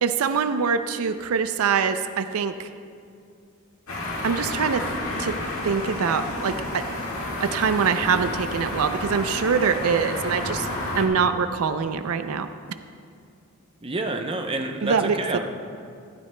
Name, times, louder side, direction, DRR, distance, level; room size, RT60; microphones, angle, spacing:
voice 1, 0.0-2.7 4.2-4.9 5.2-5.4 5.6-6.8 7.2-10.7 10.9-12.5 14.8-15.4, right 6 dB, 80° right, 10 dB, 0.4 m, -24 dB
sound 1, 3.9-11.0, left 1 dB, 80° left, 1.8 m, -30 dB
voice 2, 10.3-10.6 13.8-15.4, right 2 dB, 25° right, 4 dB, 0.6 m, -29 dB
15.5 x 12.5 x 2.2 m, 2.3 s
head